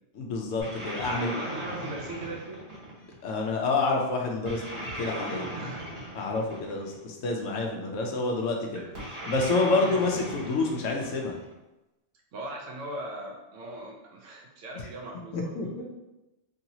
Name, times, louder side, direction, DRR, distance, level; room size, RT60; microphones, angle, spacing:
voice 1, 0.1-1.3 3.2-5.5 6.1-8.8 9.3-11.3 15.3-15.8, left 3 dB, 85° left, 1 dB, 1.0 m, -28 dB
sound 1, 0.6-3.2 4.4-7.0 8.9-11.5, right 1 dB, 65° right, 1.4 m, -37 dB
voice 2, 1.0-2.6 5.5-6.0 8.7-8.9 9.8-10.0 12.3-15.8, right 1 dB, 90° right, -1 dB, 1.1 m, -40 dB
3.1 x 2.8 x 2.7 m, 1.0 s
omnidirectional pair, 1.3 m